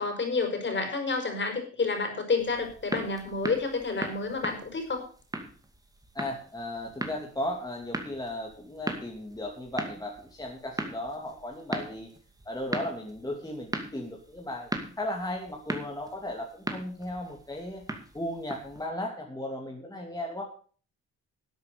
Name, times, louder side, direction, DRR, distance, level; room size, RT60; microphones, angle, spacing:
voice 1, 0.0-5.0, left 4 dB, 40° left, 5 dB, 5.1 m, -29 dB
sound 1, 2.4-18.9, right 1 dB, 10° right, 2.4 m, -39 dB
voice 2, 6.1-12.1 12.5-14.7 15.0-17.9 18.1-20.4, left 1 dB, 15° left, 0 dB, 2.8 m, -36 dB
13.0 x 7.9 x 6.8 m, 0.42 s
cardioid pair, 90°, 30 cm